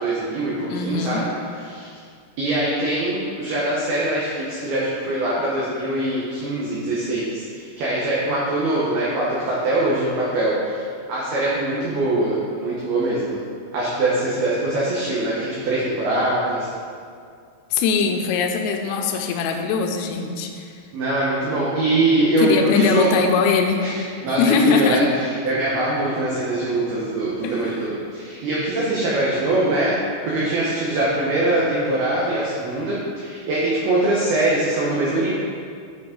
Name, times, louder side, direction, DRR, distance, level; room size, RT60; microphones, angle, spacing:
voice 1, 0.0-1.3 1.7-1.9 2.4-10.6 11.1-13.4 13.7-16.7 20.9-23.1 23.8-25.0 25.4-30.0 30.3-35.3, right 2 dB, 85° right, -6 dB, 2.2 m, -23 dB
voice 2, 0.7-1.2 17.7-20.7 22.4-23.8 24.4-25.0 27.4-27.6, left 5 dB, 85° left, 3 dB, 3.2 m, -21 dB
9.6 x 5.3 x 3.7 m, 2.3 s
omnidirectional pair, 5.9 m